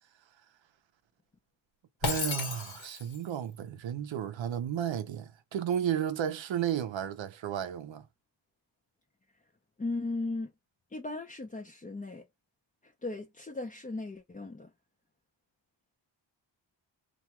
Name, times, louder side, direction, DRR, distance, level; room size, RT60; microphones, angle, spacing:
Shatter, 2.0-3.2, left 5 dB, 80° left, 1.0 m, -34 dB
voice 1, 2.0-8.0, right 9 dB, 75° right, 0.6 m, -33 dB
voice 2, 9.8-10.5 10.9-12.2 12.8-14.7, left 2 dB, 20° left, 0.4 m, -37 dB
2.4 x 2.2 x 2.8 m
wide cardioid pair, 110°, 46 cm